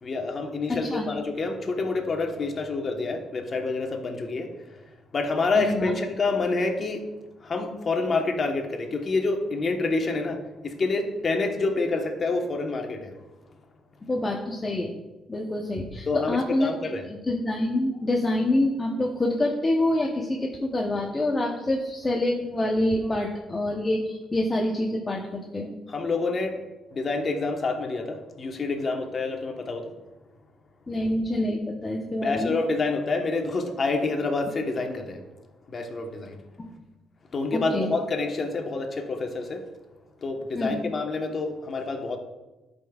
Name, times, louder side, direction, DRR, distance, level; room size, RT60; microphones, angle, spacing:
voice 1, 0.0-4.8 5.1-7.0 7.4-13.1 16.1-17.1 25.9-26.6 26.9-29.9 32.2-35.2 35.7-36.4 37.3-39.6 40.2-42.2, left 3 dB, 45° left, 3 dB, 1.2 m, -27 dB
voice 2, 0.7-1.1 5.5-5.9 14.1-14.9 15.3-16.7 17.1-25.7 30.9-32.5 37.5-37.9 40.5-40.8, left 1 dB, 25° left, 0 dB, 0.9 m, -26 dB
11.5 x 5.3 x 2.4 m, 1.1 s
cardioid pair, 90°, 0 cm